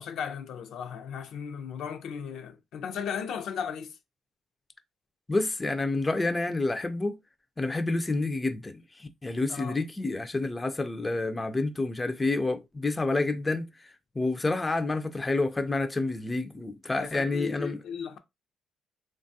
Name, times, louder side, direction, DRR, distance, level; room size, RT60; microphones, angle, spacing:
voice 1, 0.0-4.0 9.5-9.8 17.0-18.2, left 7 dB, 80° left, 0.5 m, -36 dB
voice 2, 5.3-7.2 7.6-17.8, left 2 dB, 20° left, 0.4 m, -29 dB
3.2 x 2.3 x 2.6 m
cardioid pair, 90°, 0 cm